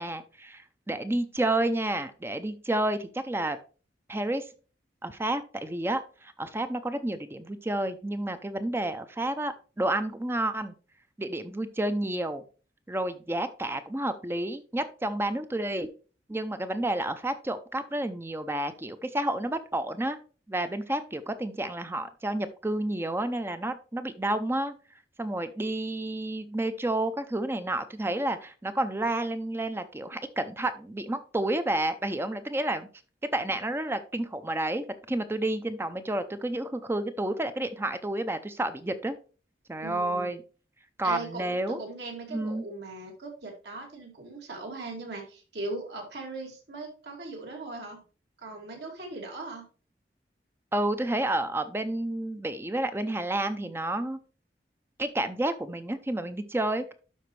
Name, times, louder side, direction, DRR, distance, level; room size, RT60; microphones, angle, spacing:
voice 1, 0.0-3.6 4.1-4.5 5.0-10.7 11.2-12.4 12.9-15.9 16.3-20.2 20.5-24.7 25.2-32.9 33.3-39.2 39.7-40.4 41.0-41.8 42.3-42.6 50.7-54.2 55.0-56.9, right 1 dB, 15° right, 11 dB, 0.5 m, -30 dB
voice 2, 39.8-40.3 41.0-48.0 48.4-49.7, right 2 dB, 70° right, 1 dB, 2.4 m, -39 dB
11.5 x 4.3 x 3.1 m, 0.36 s
head